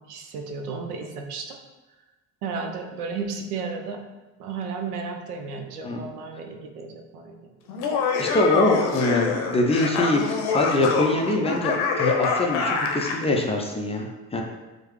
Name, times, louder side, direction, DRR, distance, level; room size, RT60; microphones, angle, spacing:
voice 1, 0.1-1.6 2.4-4.0 4.4-7.4, right 4 dB, 80° right, 4 dB, 0.6 m, -33 dB
Laughter, 7.7-13.3, left 5 dB, 55° left, 0.7 m, -25 dB
voice 2, 8.2-14.4, left 2 dB, 15° left, 0 dB, 0.4 m, -23 dB
4.7 x 2.1 x 3.0 m, 1.1 s
hypercardioid pair, 55°, 46 cm